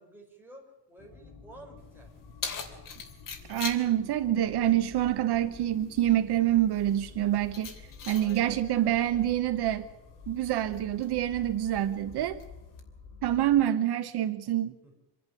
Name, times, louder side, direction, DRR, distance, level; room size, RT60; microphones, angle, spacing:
voice 1, 0.0-2.1 8.1-9.3 11.5-12.4 14.8-15.0, right 1 dB, 5° right, -1 dB, 5.3 m, -53 dB
sound 1, 1.0-13.6, left 5 dB, 65° left, 5.2 m, -51 dB
Keys jangling, 1.8-12.8, left 6 dB, 45° left, 3.1 m, -45 dB
voice 2, 3.5-7.7 8.1-9.8 10.3-12.4 13.2-14.7, right 12 dB, 60° right, 11 dB, 0.9 m, -26 dB
26.0 x 11.0 x 9.8 m, 1.0 s
cardioid pair, 155°, 44 cm